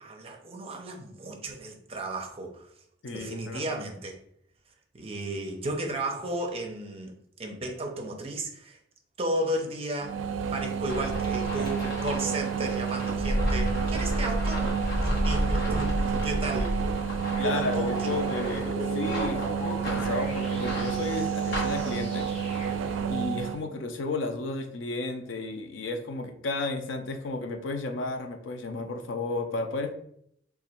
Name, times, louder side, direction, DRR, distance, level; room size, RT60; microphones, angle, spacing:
voice 1, 0.0-2.7 3.1-4.2 4.9-7.1 7.4-8.8 9.2-10.2 10.5-14.7 15.0-16.8 17.4-18.1, right 1 dB, 30° right, 2 dB, 0.6 m, -34 dB
voice 2, 3.0-3.8 17.4-22.3 23.1-29.9, left 2 dB, 80° left, 6 dB, 0.5 m, -33 dB
sound 1, 10.0-23.6, right 7 dB, 85° right, 0.4 m, -30 dB
sound 2, 10.9-22.0, equal, 60° left, 1.1 m, -31 dB
sound 3, 17.3-23.0, left 1 dB, 35° left, 0.9 m, -40 dB
2.9 x 2.4 x 4.2 m, 0.70 s
head